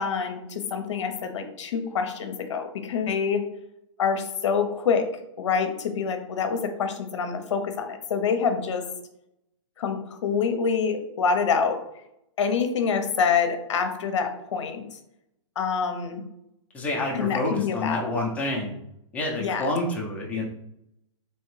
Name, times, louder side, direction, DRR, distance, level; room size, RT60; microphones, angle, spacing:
voice 1, 0.0-3.4 4.0-5.1 5.4-8.8 9.8-11.8 12.4-14.8 15.6-16.2 17.1-18.2 19.4-19.7, left 6 dB, 65° left, 7 dB, 0.8 m, -26 dB
voice 2, 16.7-18.8 19.1-20.4, left 2 dB, 10° left, -2 dB, 0.7 m, -28 dB
3.3 x 3.1 x 3.2 m, 0.81 s
hypercardioid pair, 145°, 16 cm